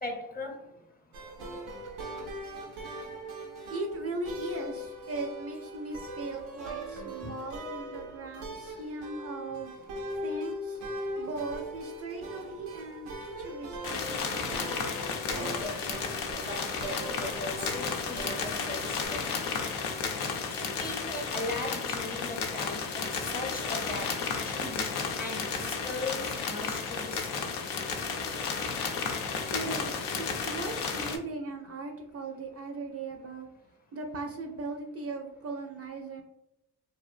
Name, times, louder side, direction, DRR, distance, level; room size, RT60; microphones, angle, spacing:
voice 1, 0.0-0.6 7.2-7.3 15.3-16.0 16.5-19.6 20.5-24.1 24.4-24.9 25.2-27.5, left 2 dB, 25° left, 2 dB, 0.7 m, -39 dB
sound 1, 1.1-19.1, right 1 dB, 90° right, 0.5 m, -40 dB
voice 2, 3.7-9.7 10.2-10.8 11.2-14.4 29.5-33.5 33.9-36.2, right 3 dB, 40° right, 2 dB, 0.4 m, -38 dB
sound 2, 13.8-31.2, left 5 dB, 75° left, 0.5 m, -33 dB
2.4 x 2.1 x 2.4 m, 0.85 s
hypercardioid pair, 45°, 39 cm